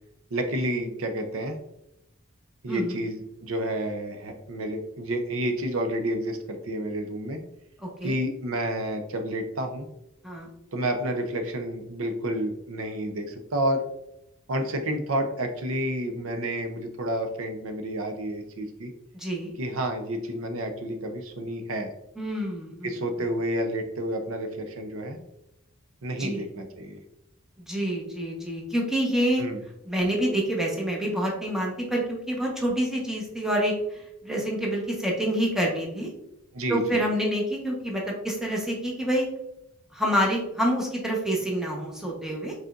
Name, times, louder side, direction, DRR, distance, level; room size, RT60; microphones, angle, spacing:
voice 1, 0.3-1.6 2.6-7.4 8.0-9.9 10.7-13.8 14.5-18.9 19.6-21.9 22.8-25.2 26.0-27.0 29.4-29.6 36.5-37.0, right 1 dB, 70° right, 5 dB, 0.6 m, -30 dB
voice 2, 2.7-3.0 7.8-8.1 10.2-10.5 19.1-19.5 22.2-22.9 26.2-26.4 27.7-29.4 29.8-36.1 36.7-39.3 39.9-42.5, equal, ahead, -2 dB, 1.0 m, -27 dB
5.1 x 4.1 x 2.5 m, 0.84 s
head